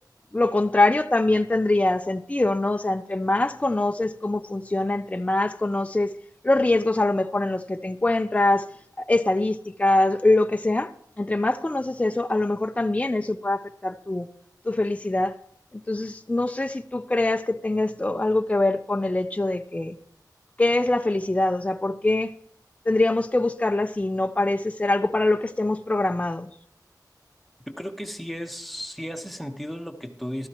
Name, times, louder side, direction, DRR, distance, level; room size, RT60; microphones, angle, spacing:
voice 1, 0.3-6.2 6.4-8.7 9.0-10.9 11.2-14.3 14.6-15.4 15.9-20.0 20.6-22.3 22.9-26.5, left 2 dB, 20° left, 0.6 m, -23 dB
voice 2, 27.7-30.5, equal, ahead, 1.2 m, -34 dB
13.5 x 13.0 x 3.0 m
wide cardioid pair, 65°, 7 cm